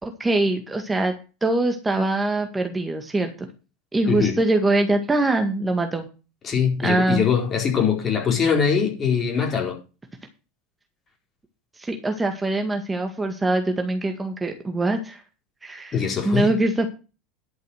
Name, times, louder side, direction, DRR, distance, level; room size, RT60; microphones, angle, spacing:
voice 1, 0.0-1.1 1.4-3.5 3.9-6.1 6.8-7.3 11.8-15.2 15.6-16.0 16.2-16.9, right 2 dB, 15° right, 1.9 m, -23 dB
voice 2, 6.4-9.8 15.9-16.5, left 7 dB, 35° left, 4.4 m, -22 dB
11.0 x 6.4 x 6.5 m
hypercardioid pair, 80°, 0 cm